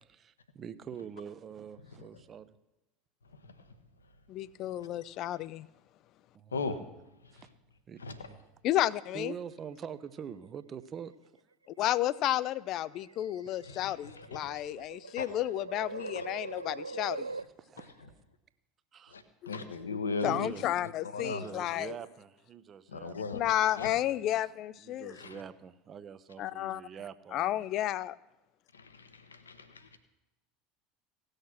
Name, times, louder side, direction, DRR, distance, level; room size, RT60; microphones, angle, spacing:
voice 1, 0.0-2.6 6.3-6.8 7.3-7.5 7.9-8.0 8.3-8.5 9.1-11.1 16.9-17.9 18.9-19.1 19.5-19.6 20.2-20.7 21.1-23.3 24.1-24.4 24.8-27.6, right 8 dB, 30° right, 14 dB, 0.7 m, -45 dB
voice 2, 4.3-5.7 8.6-9.3 11.8-17.3 20.2-21.9 23.3-25.1 26.4-26.8 27.3-28.2, left 13 dB, 45° left, 21 dB, 0.4 m, -32 dB
sound 1, 8.8-9.7 10.8-11.3 12.2-17.4, right 3 dB, 85° right, 0.3 m, -43 dB
voice 3, 13.6-14.7 15.2-15.3 16.0-16.7 17.3-17.4 19.1-20.5 21.0-21.5 22.9-23.4 23.8-23.9 25.1-25.4 28.7-30.0, left 4 dB, 75° left, 12 dB, 0.9 m, -38 dB
17.5 x 6.5 x 6.0 m, 0.99 s
figure-of-eight pair, 75°, 0 cm